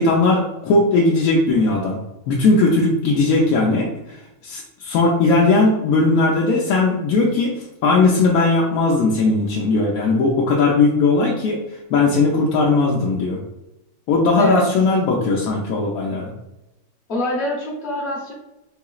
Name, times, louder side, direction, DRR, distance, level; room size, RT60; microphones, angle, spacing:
voice 1, 0.0-2.0 2.3-3.9 4.4-7.5 7.8-11.6 11.9-13.4 14.1-16.3, left 3 dB, 85° left, -4 dB, 1.1 m, -18 dB
voice 2, 17.1-18.3, equal, 55° left, -4 dB, 1.0 m, -25 dB
3.8 x 2.9 x 2.3 m, 0.94 s
omnidirectional pair, 1.5 m